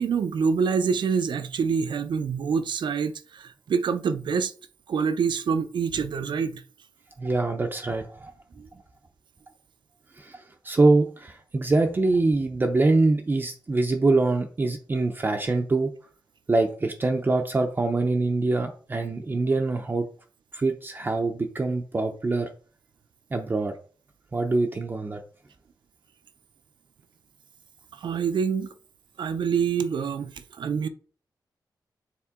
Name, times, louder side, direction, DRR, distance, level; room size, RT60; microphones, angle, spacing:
voice 1, 0.0-4.5 4.9-6.6 8.6-8.7 27.9-28.7 29.2-30.9, right 6 dB, 75° right, 0.5 m, -26 dB
voice 2, 7.2-8.3 10.2-15.9 16.5-20.0 20.5-22.5 23.3-23.7 24.3-25.2, right 3 dB, 25° right, 0.5 m, -24 dB
7.1 x 4.3 x 3.6 m
wide cardioid pair, 175°, 8 cm